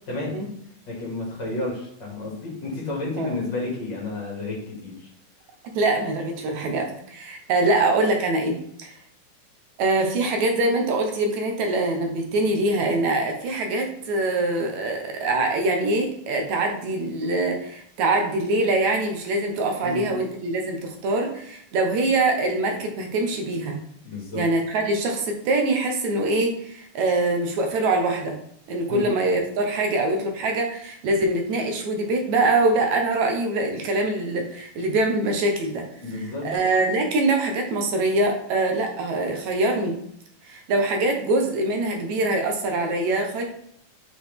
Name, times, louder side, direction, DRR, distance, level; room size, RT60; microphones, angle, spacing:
voice 1, 0.9-5.1 19.8-20.0 24.0-24.4 28.9-29.1 36.0-36.5, left 2 dB, 35° left, -4 dB, 2.5 m, -31 dB
voice 2, 5.8-8.9 9.8-23.8 24.3-28.4 28.7-35.9 36.1-40.0 40.5-43.4, right 2 dB, 70° right, 3 dB, 2.0 m, -24 dB
6.2 x 4.5 x 3.4 m, 0.70 s
omnidirectional pair, 3.8 m